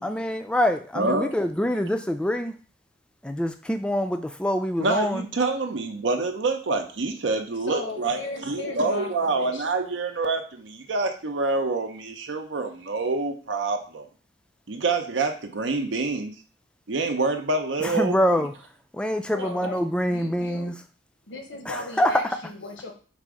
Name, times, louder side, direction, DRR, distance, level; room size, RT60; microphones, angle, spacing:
voice 1, 0.0-2.6 3.2-5.3 17.8-18.5 18.9-20.7 21.7-22.2, equal, 5° left, 7 dB, 0.3 m, -25 dB
voice 2, 1.0-1.3 4.8-8.2 8.5-14.1 14.7-16.3 16.9-18.1, right 3 dB, 80° right, 5 dB, 0.6 m, -26 dB
voice 3, 7.5-9.8 19.3-20.7 21.3-22.9, left 2 dB, 75° left, 3 dB, 0.9 m, -37 dB
4.0 x 2.5 x 4.7 m, 0.40 s
head